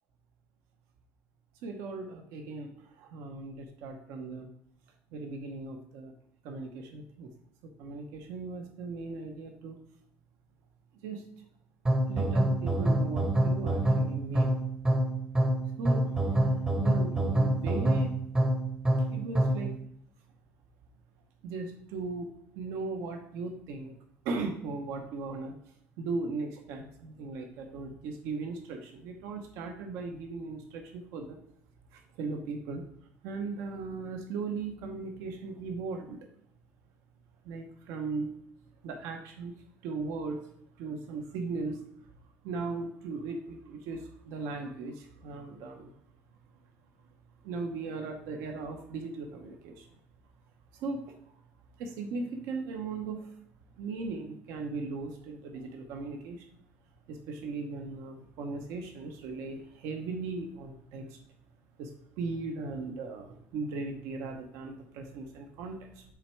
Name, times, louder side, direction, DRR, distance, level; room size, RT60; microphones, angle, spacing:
voice 1, 1.6-4.5 5.1-6.1 6.4-7.3 7.6-9.7 11.0-11.2 12.1-14.5 15.8-18.1 19.1-19.8 21.4-22.3 22.5-24.0 24.2-25.5 26.0-31.4 31.9-32.8 33.2-36.2 37.4-38.3 38.8-39.5 39.8-40.5 40.8-41.8 42.4-45.9 47.4-49.9 50.7-51.2 51.8-53.3 53.8-56.4 57.1-61.2 61.8-61.9 62.2-66.0, right 3 dB, 80° right, 4 dB, 0.8 m, -38 dB
sound 1, 11.9-19.7, right 1 dB, 15° right, 0.7 m, -26 dB
7.3 x 3.4 x 4.5 m, 0.69 s
cardioid pair, 160°, 5 cm